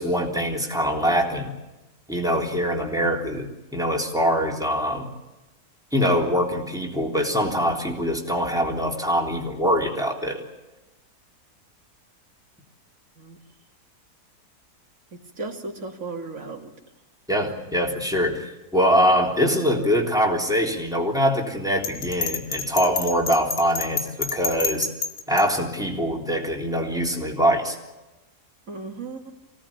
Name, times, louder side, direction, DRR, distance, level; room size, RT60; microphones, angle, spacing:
voice 1, 0.0-1.5 2.1-5.1 5.9-10.4 17.3-24.9 25.3-27.8, equal, ahead, -1 dB, 3.5 m, -23 dB
voice 2, 15.1-16.7 28.7-29.3, right 3 dB, 55° right, 2 dB, 3.0 m, -35 dB
Bell, 21.8-25.4, left 5 dB, 65° left, 2.0 m, -28 dB
26.0 x 18.0 x 8.8 m, 1.1 s
omnidirectional pair, 1.7 m